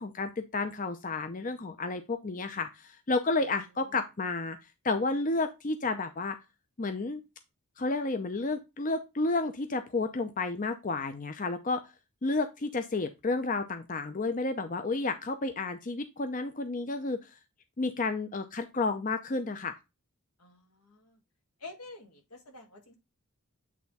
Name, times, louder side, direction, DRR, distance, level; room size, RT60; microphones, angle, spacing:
voice 1, 0.0-4.6 4.8-6.4 6.8-7.2 7.8-11.8 12.2-17.2 17.8-19.8, left 3 dB, 35° left, 8 dB, 0.6 m, -31 dB
voice 2, 20.4-21.2 21.6-23.0, left 3 dB, 85° left, 3 dB, 2.1 m, -49 dB
8.4 x 3.5 x 4.1 m, 0.24 s
head